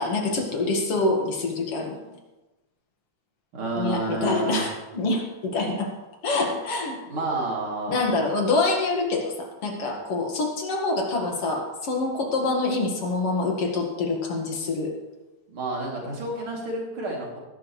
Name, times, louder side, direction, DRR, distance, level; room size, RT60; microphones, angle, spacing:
voice 1, 0.0-2.0 3.8-5.9 6.2-7.0 7.9-14.9, left 3 dB, 50° left, 1 dB, 2.6 m, -26 dB
voice 2, 3.5-4.7 7.1-8.3 9.8-10.0 15.5-17.4, right 2 dB, 45° right, -2 dB, 3.5 m, -30 dB
19.0 x 10.5 x 3.2 m, 1.1 s
omnidirectional pair, 3.5 m